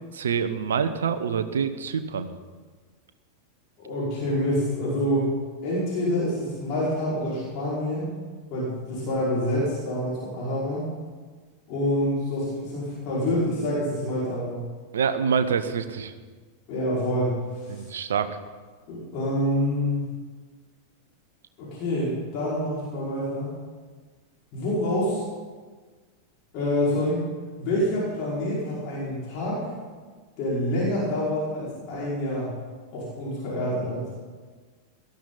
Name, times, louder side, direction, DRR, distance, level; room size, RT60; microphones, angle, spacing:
voice 1, 0.1-2.3 14.9-16.1 17.7-18.3, right 6 dB, 65° right, 10 dB, 0.9 m, -26 dB
voice 2, 3.8-5.3 5.6-8.1 8.5-10.9 11.7-14.6 16.7-17.7 18.9-20.0 21.6-23.5 24.5-25.2 26.5-27.3 27.6-29.7 30.4-32.5 32.9-34.0, left 1 dB, 40° left, -7 dB, 5.4 m, -27 dB
18.0 x 13.0 x 4.1 m, 1.4 s
figure-of-eight pair, 90°, 0 cm